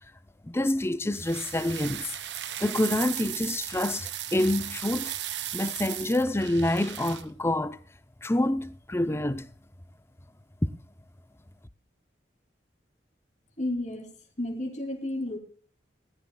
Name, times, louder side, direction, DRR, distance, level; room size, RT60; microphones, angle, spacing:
voice 1, 0.4-2.1 2.6-5.1 5.5-7.8 8.2-9.5, left 1 dB, 15° left, 0.6 m, -27 dB
sound 1, 1.1-7.2, right 11 dB, 85° right, 1.0 m, -36 dB
voice 2, 13.6-14.1 14.4-15.4, left 1 dB, 40° left, 2.9 m, -32 dB
18.5 x 13.5 x 2.3 m
head